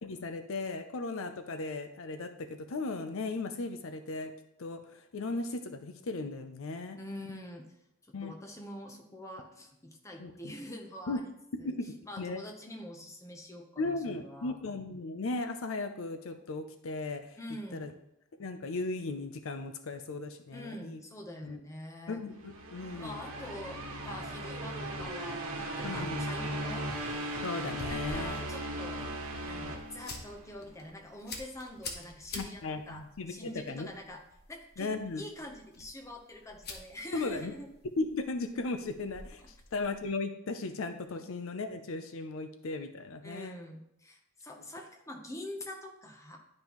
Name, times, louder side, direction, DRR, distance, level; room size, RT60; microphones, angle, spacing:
voice 1, 0.0-4.3 4.6-7.0 8.1-8.3 10.2-10.3 11.1-11.2 11.6-12.4 13.8-17.4 17.7-17.9 18.4-21.0 21.4-21.6 22.1-23.2 25.8-26.2 27.4-28.3 32.3-33.3 33.7-33.9 34.8-35.3 37.1-37.5 38.0-43.6, left 3 dB, 65° left, 8 dB, 0.5 m, -36 dB
voice 2, 7.0-7.7 8.1-11.2 11.6-11.7 12.0-14.6 17.4-17.9 20.5-22.2 23.0-26.9 27.9-29.0 29.4-33.0 33.3-34.2 34.5-34.9 35.2-37.7 43.2-46.4, left 1 dB, 15° left, 2 dB, 0.9 m, -45 dB
sound 1, 22.3-30.6, right 1 dB, 75° right, 1.2 m, -37 dB
sound 2, 26.9-40.1, left 3 dB, 45° left, 1.1 m, -49 dB
10.5 x 5.4 x 3.0 m, 0.79 s
head